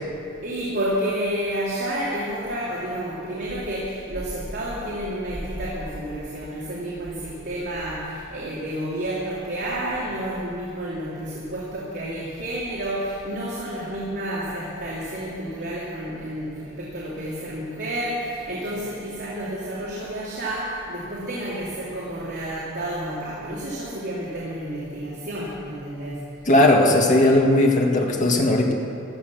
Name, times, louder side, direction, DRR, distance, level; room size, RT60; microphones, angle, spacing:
voice 1, 0.4-26.3, right 1 dB, 55° right, -7 dB, 3.0 m, -30 dB
voice 2, 26.5-28.7, left 1 dB, 40° left, 0 dB, 1.8 m, -17 dB
16.0 x 12.5 x 6.4 m, 2.5 s
head